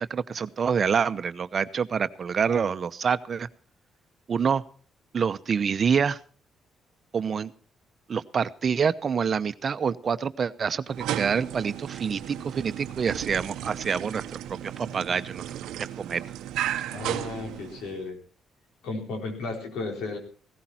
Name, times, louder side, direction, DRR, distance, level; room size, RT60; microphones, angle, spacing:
voice 1, 0.0-3.5 4.3-4.6 5.1-6.2 7.1-7.5 8.1-15.4 16.0-16.2, right 6 dB, 45° right, 13 dB, 0.8 m, -27 dB
sound 1, 10.9-18.1, right 12 dB, 85° right, 0.7 m, -34 dB
voice 2, 16.9-18.2 18.8-20.2, left 3 dB, 90° left, 2 dB, 4.3 m, -34 dB
17.0 x 14.0 x 4.4 m, 0.41 s
cardioid pair, 90°, 0 cm